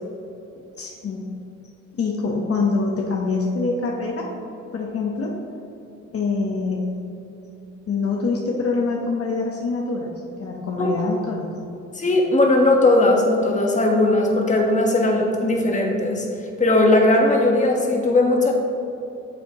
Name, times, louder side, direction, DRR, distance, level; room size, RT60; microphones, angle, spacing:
voice 1, 0.8-1.4 2.0-4.3 4.7-5.3 6.1-6.9 7.9-10.1 10.4-11.5, left 4 dB, 50° left, -1 dB, 1.0 m, -25 dB
voice 2, 11.9-16.3 16.6-18.5, left 2 dB, 25° left, 0 dB, 1.3 m, -18 dB
9.2 x 6.8 x 3.0 m, 2.9 s
cardioid pair, 90°, 30 cm